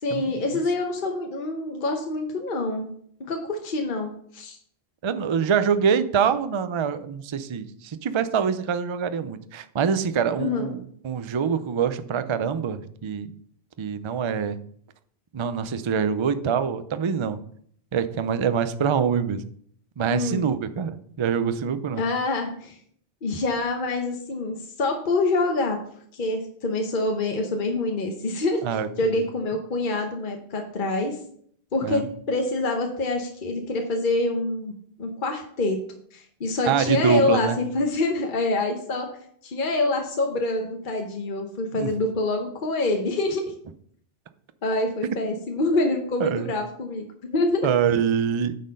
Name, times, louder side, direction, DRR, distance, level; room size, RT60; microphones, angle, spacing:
voice 1, 0.0-2.9 3.3-4.6 10.4-10.7 20.1-20.5 21.9-22.8 23.2-25.8 26.1-28.6 29.0-31.2 31.7-34.7 35.0-35.8 36.1-39.1 39.4-43.4 44.6-47.0 47.3-47.7, left 2 dB, 50° left, 3 dB, 1.1 m, -26 dB
voice 2, 5.0-13.3 13.8-14.6 15.3-17.4 17.9-19.4 20.0-22.0 28.6-29.2 31.8-32.0 36.7-37.6 41.7-41.9 46.2-46.5 47.6-48.6, right 7 dB, 40° right, 11 dB, 0.4 m, -25 dB
9.6 x 4.3 x 5.3 m, 0.63 s
omnidirectional pair, 1.1 m